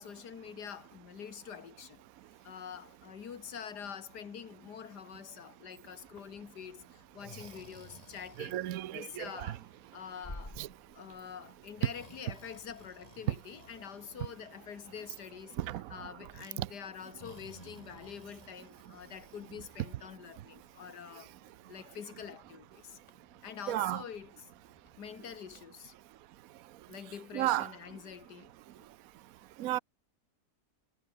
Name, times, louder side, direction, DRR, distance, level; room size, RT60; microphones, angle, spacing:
voice 1, 0.0-2.0 2.4-8.6 8.9-9.6 9.9-10.6 10.9-15.6 15.9-21.3 21.7-23.0 23.4-24.3 25.0-25.9 26.9-28.5 28.8-28.9, left 7 dB, 85° left, 2.2 m, -46 dB
Breathing, 6.0-25.6, left 1 dB, 20° left, 4.7 m, -56 dB
voice 2, 8.4-9.6 10.6-10.7 13.3-13.4 15.6-15.8 16.6-16.7 23.7-24.0 27.3-27.7 29.6-29.8, right 14 dB, 65° right, 1.1 m, -33 dB
omnidirectional pair, 1.7 m